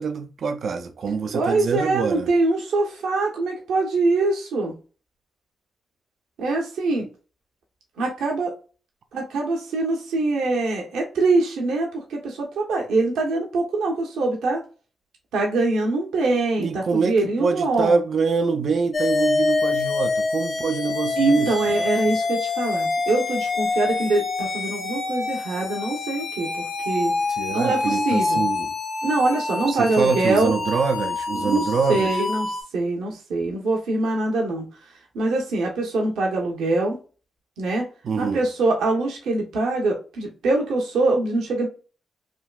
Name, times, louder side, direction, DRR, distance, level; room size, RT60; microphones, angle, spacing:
voice 1, 0.0-2.3 7.0-7.1 16.6-21.5 27.3-28.7 29.6-32.2 38.0-38.4, right 5 dB, 65° right, 0.4 m, -25 dB
voice 2, 1.3-4.7 6.4-7.0 8.0-8.5 9.1-14.6 15.3-18.0 21.2-27.1 27.5-28.4 29.0-30.5 31.3-31.6 31.9-34.6 35.1-37.0 37.6-37.9 38.2-41.7, right 2 dB, 85° right, 0.8 m, -23 dB
sound 1, 18.9-32.6, left 3 dB, 60° left, 0.7 m, -26 dB
3.5 x 2.3 x 2.3 m
supercardioid pair, 55°, 0 cm